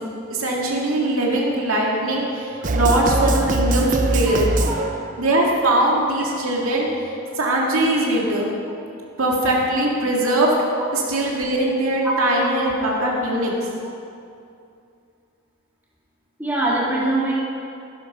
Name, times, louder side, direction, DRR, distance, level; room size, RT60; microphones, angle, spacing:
voice 1, 0.3-4.5 5.2-6.9 7.4-8.5 9.2-10.5 10.9-13.7, right 1 dB, 75° right, -2 dB, 2.3 m, -21 dB
sound 1, 2.6-5.3, right 2 dB, 35° right, 0.6 m, -22 dB
voice 2, 12.0-12.5 16.4-17.3, right 1 dB, 10° right, -7 dB, 2.6 m, -23 dB
13.5 x 11.5 x 5.6 m, 2.5 s
head